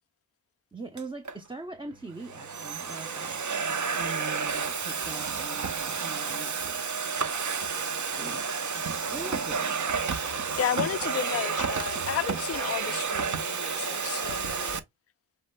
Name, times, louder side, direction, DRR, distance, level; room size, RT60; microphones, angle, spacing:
voice 1, 0.7-3.4 3.9-7.0 8.1-8.5 8.7-9.6, right 3 dB, 10° right, 0.7 m, -42 dB
Domestic sounds home sounds, 1.0-1.4 2.1-14.8, right 5 dB, 40° right, 0.9 m, -31 dB
voice 2, 10.6-14.8, left 10 dB, 35° left, 0.4 m, -32 dB
7.0 x 3.2 x 2.2 m
cardioid pair, 55°, 45 cm